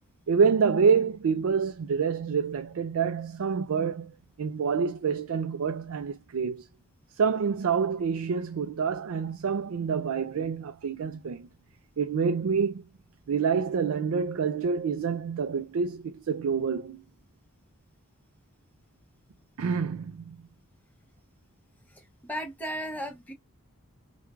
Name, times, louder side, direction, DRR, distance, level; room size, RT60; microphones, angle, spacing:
voice 1, 0.3-6.7 7.2-11.5 12.0-12.9 13.3-17.0 19.6-20.5, right 6 dB, 70° right, 0.4 m, -27 dB
voice 2, 22.2-23.3, equal, 5° left, 0.7 m, -35 dB
4.4 x 2.2 x 2.4 m
head